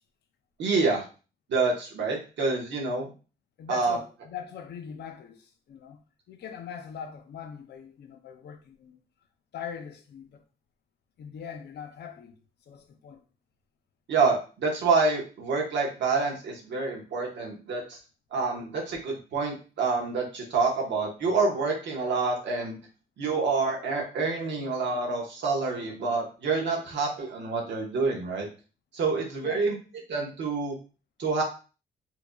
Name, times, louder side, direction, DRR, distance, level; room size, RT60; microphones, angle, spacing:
voice 1, 0.6-1.0 1.5-3.1 3.7-4.0 14.1-18.0 18.3-22.8 23.2-28.5 28.9-29.7 30.1-30.7 31.2-31.4, right 4 dB, 70° right, 1.2 m, -27 dB
voice 2, 3.6-6.0 6.3-9.0 9.5-10.4 11.2-12.4 12.7-13.2 29.4-29.7, left 7 dB, 60° left, 0.6 m, -41 dB
4.5 x 2.7 x 2.3 m
wide cardioid pair, 170°, 19 cm